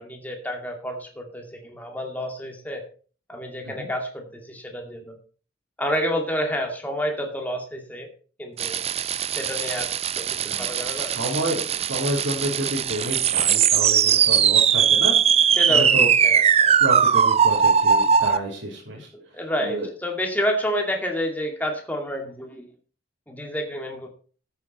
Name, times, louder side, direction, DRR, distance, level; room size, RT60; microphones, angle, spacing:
voice 1, 0.0-2.9 3.3-5.1 5.8-8.1 8.4-8.8 9.3-9.9 10.2-11.1 15.6-16.8 19.1-22.7 23.3-24.1, equal, 10° left, 2 dB, 2.4 m, -29 dB
sound 1, 8.6-18.4, right 7 dB, 35° right, 0.5 m, -20 dB
voice 2, 10.4-16.1 16.8-19.1 19.6-19.9, right 1 dB, 85° right, -6 dB, 3.7 m, -30 dB
13.5 x 8.4 x 4.3 m, 0.39 s
head